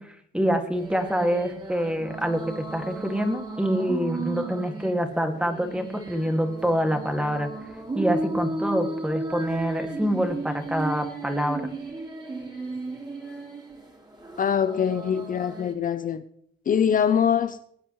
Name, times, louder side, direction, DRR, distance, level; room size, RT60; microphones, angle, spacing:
voice 1, 0.0-7.5 7.9-11.6, equal, 5° right, 5 dB, 2.1 m, -26 dB
sound 1, 0.7-15.7, right 2 dB, 20° right, 3.6 m, -35 dB
voice 2, 14.4-16.2 16.7-17.6, left 8 dB, 45° left, 10 dB, 0.6 m, -23 dB
21.0 x 9.1 x 3.1 m, 0.68 s
cardioid pair, 90°, 20 cm